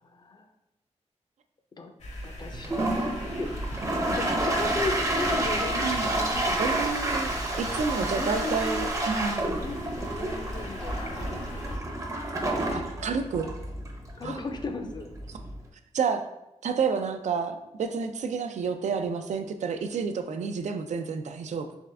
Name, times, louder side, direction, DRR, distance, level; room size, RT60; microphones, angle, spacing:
voice 1, 0.0-0.5 1.8-1.9 2.2-2.9 3.2-3.5 4.0-6.8 8.0-8.9 9.5-12.1 14.2-15.1, left 3 dB, 35° left, 5 dB, 0.5 m, -36 dB
sound 1, 2.0-11.8, equal, 70° left, 1.0 m, -37 dB
Toilet flush, 2.5-15.7, right 1 dB, 25° right, 0.6 m, -30 dB
voice 2, 5.8-6.1 6.6-9.4 12.7-13.5 14.2-14.4 15.3-15.4 15.9-16.2 16.6-21.7, right 5 dB, 75° right, 7 dB, 0.4 m, -30 dB
3.6 x 3.4 x 3.3 m, 0.88 s
wide cardioid pair, 110°, 12 cm